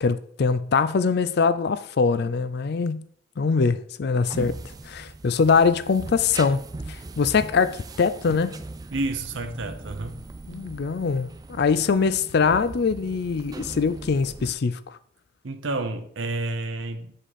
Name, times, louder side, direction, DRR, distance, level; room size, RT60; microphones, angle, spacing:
voice 1, 0.0-3.0 3.4-4.6 4.8-6.6 6.9-8.6 10.5-15.0, left 5 dB, 55° left, 0.4 m, -23 dB
sound 1, 4.2-14.5, right 2 dB, 20° right, 0.3 m, -39 dB
voice 2, 8.9-10.2 15.4-17.1, right 2 dB, 65° right, 0.7 m, -30 dB
7.5 x 5.0 x 4.1 m
head